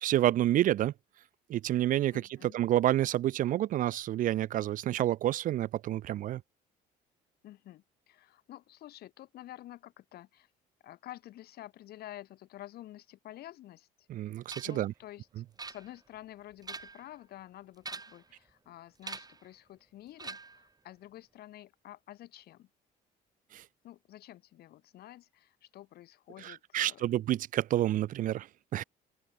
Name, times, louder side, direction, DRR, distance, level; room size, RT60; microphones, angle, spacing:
voice 1, 0.0-0.9 1.5-2.1 2.4-6.4 14.1-14.9 23.5-23.6 26.4-28.5 28.7-28.8, right 13 dB, 50° right, 0.4 m, -29 dB
voice 2, 2.1-2.6 7.4-10.5 10.8-14.1 14.6-15.3 15.7-22.7 23.8-27.1, left 14 dB, 70° left, 1.8 m, -50 dB
sound 1, 14.5-14.9 15.6-16.2 16.5-17.1 17.8-18.3 19.0-19.5 20.2-20.7, right 4 dB, 20° right, 4.1 m, -44 dB
open air
cardioid pair, 110°, 17 cm